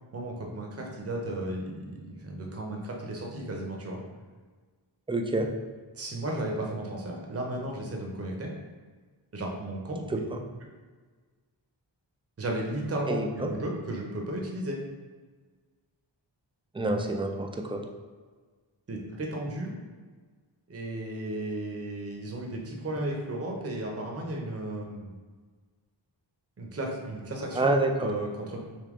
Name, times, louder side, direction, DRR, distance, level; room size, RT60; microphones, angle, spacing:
voice 1, 0.1-4.0 5.9-8.5 9.3-10.2 10.6-10.7 12.4-14.8 18.9-19.7 20.7-25.1 26.6-27.7 28.0-28.6, right 1 dB, 35° right, -1 dB, 0.7 m, -34 dB
voice 2, 5.1-5.5 10.3-10.4 13.1-13.3 16.7-17.8 27.6-28.1, right 2 dB, 15° right, 2 dB, 0.3 m, -27 dB
3.5 x 2.8 x 3.6 m, 1.4 s
wide cardioid pair, 85°, 45 cm